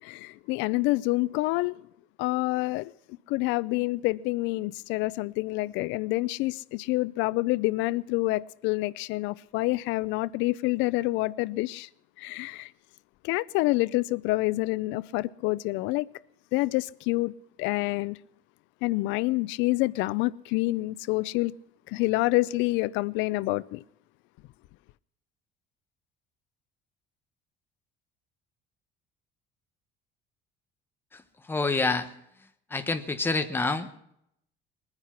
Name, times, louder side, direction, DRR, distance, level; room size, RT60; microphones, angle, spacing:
voice 1, 0.0-1.8 2.2-2.9 3.3-11.9 12.2-12.7 13.2-16.1 16.5-17.3 17.6-18.2 18.8-21.5 21.9-23.8, left 20 dB, 85° left, 0.5 m, -27 dB
voice 2, 31.5-32.1 32.7-33.9, left 3 dB, 10° left, 1.0 m, -27 dB
21.0 x 9.8 x 5.8 m
cardioid pair, 175°, 19 cm